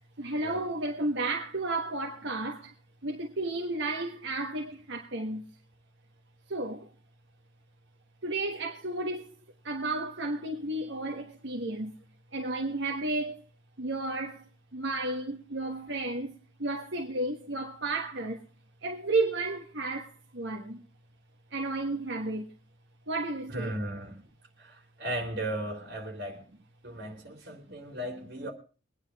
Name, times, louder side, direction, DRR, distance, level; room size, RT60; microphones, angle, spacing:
voice 1, 0.0-2.7 3.0-5.5 6.5-6.9 8.2-9.4 9.6-11.9 12.3-13.4 13.8-18.4 18.8-20.8 21.5-22.5 23.1-23.7, right 2 dB, 75° right, 1.4 m, -32 dB
voice 2, 23.5-24.2 24.6-26.4 26.8-28.5, right 1 dB, 55° right, 3.7 m, -36 dB
23.0 x 9.9 x 3.5 m
head